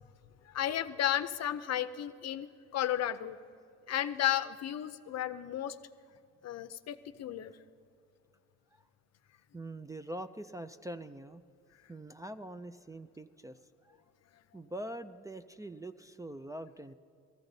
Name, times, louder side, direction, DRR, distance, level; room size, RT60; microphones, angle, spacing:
voice 1, 0.5-3.4 3.9-5.8 6.4-7.5, left 11 dB, 60° left, 12 dB, 0.6 m, -33 dB
voice 2, 9.5-11.4 11.9-14.0 14.5-16.9, right 1 dB, 10° right, 6 dB, 0.3 m, -44 dB
17.5 x 15.0 x 4.0 m, 2.5 s
cardioid pair, 90°, 30 cm